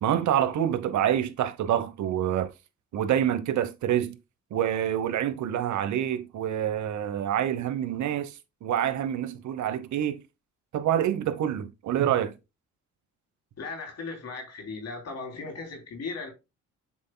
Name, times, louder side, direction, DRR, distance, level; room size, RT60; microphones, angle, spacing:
voice 1, 0.0-2.5 2.9-4.2 4.5-8.4 8.6-10.2 10.7-12.3, right 10 dB, 70° right, 1.1 m, -27 dB
voice 2, 13.6-16.3, left 4 dB, 55° left, 3.1 m, -37 dB
7.4 x 6.3 x 2.2 m
cardioid pair, 90°, 30 cm